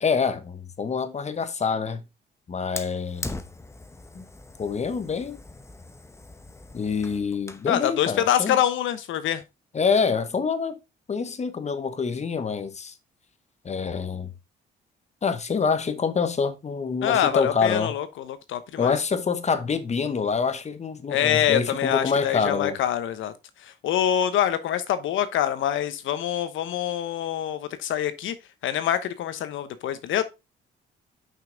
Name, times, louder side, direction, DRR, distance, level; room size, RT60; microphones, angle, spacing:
voice 1, 0.0-2.0 2.5-3.4 4.1-4.2 4.6-5.4 6.7-8.6 9.7-10.8 11.1-12.9 13.6-14.3 15.2-17.9 18.8-22.8, left 5 dB, 35° left, 1.1 m, -26 dB
Fire, 2.8-7.7, left 2 dB, 15° left, 0.8 m, -40 dB
voice 2, 7.7-9.4 17.0-18.9 21.1-23.3 23.6-28.3 28.6-30.2, left 10 dB, 80° left, 1.0 m, -25 dB
5.8 x 5.7 x 3.8 m
cardioid pair, 90°, 20 cm